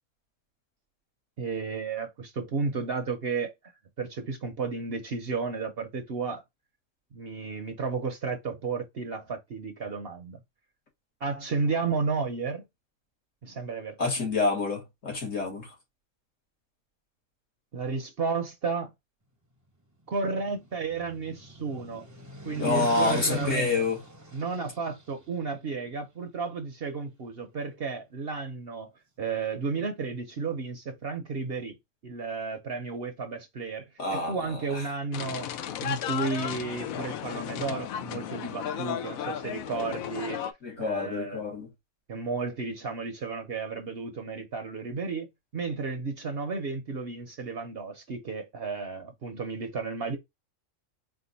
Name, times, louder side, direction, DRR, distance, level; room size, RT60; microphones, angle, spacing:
voice 1, 1.4-3.5 4.0-6.4 7.1-10.4 11.2-12.6 13.4-14.0 17.7-18.9 20.1-22.1 22.4-23.7 24.3-28.9 29.2-31.8 32.0-35.5 35.8-40.4 40.8-41.4 42.1-45.3 45.5-50.2, right 4 dB, 55° right, 0.8 m, -33 dB
voice 2, 14.0-15.7 22.6-24.0 34.0-34.9 40.6-41.7, left 3 dB, 65° left, 2.2 m, -28 dB
sound 1, 20.4-25.0, right 1 dB, 15° right, 0.7 m, -39 dB
sound 2, 35.1-40.5, left 9 dB, 85° left, 1.0 m, -34 dB
4.4 x 2.5 x 3.9 m
omnidirectional pair, 1.4 m